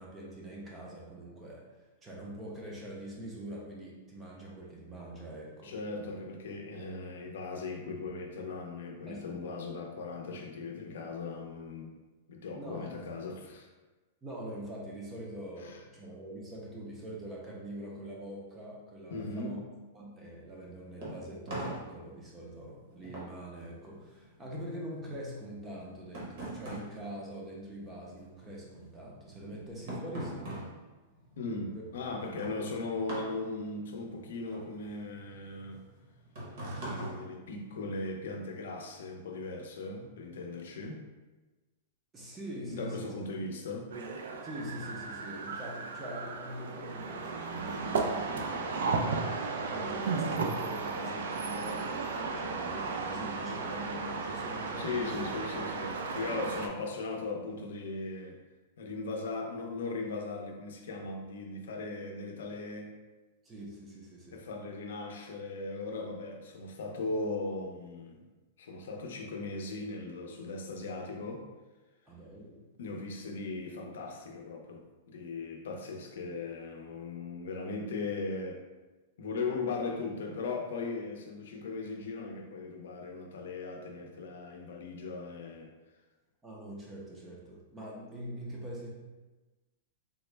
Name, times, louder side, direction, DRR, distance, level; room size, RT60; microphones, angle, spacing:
voice 1, 0.0-1.6 2.0-6.1 9.1-9.5 12.5-13.1 14.2-19.6 19.9-30.6 31.7-31.8 37.0-37.1 42.1-43.1 44.4-49.2 49.7-55.3 63.4-64.4 72.1-72.7 86.4-88.9, right 1 dB, 10° right, -4 dB, 0.4 m, -44 dB
voice 2, 5.6-11.9 12.3-13.7 15.6-15.8 19.1-19.6 31.4-35.8 36.8-41.0 42.7-43.9 54.7-58.4 58.8-62.9 64.3-68.2 68.6-71.5 72.8-78.6 79.2-85.7, left 3 dB, 70° left, 2 dB, 0.5 m, -38 dB
sound 1, 20.5-28.2 28.4-38.1, right 1 dB, 45° right, 0.9 m, -43 dB
sound 2, 43.9-56.7, right 4 dB, 70° right, 0.4 m, -35 dB
3.6 x 2.1 x 3.2 m, 1.2 s
supercardioid pair, 180°, 0 cm